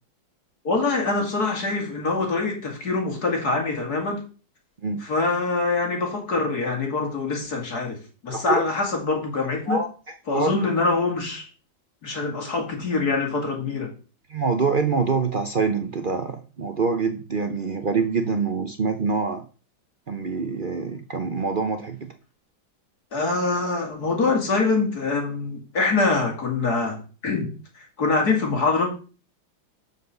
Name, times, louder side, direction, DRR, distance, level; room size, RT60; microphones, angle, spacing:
voice 1, 0.6-4.2 5.0-9.8 10.3-11.5 12.0-13.9 23.1-29.0, left 3 dB, 50° left, 2 dB, 2.9 m, -24 dB
voice 2, 8.3-8.6 9.7-10.5 14.3-19.4 20.1-22.1, right 4 dB, 60° right, 7 dB, 0.5 m, -25 dB
6.9 x 5.9 x 6.9 m, 0.36 s
omnidirectional pair, 2.1 m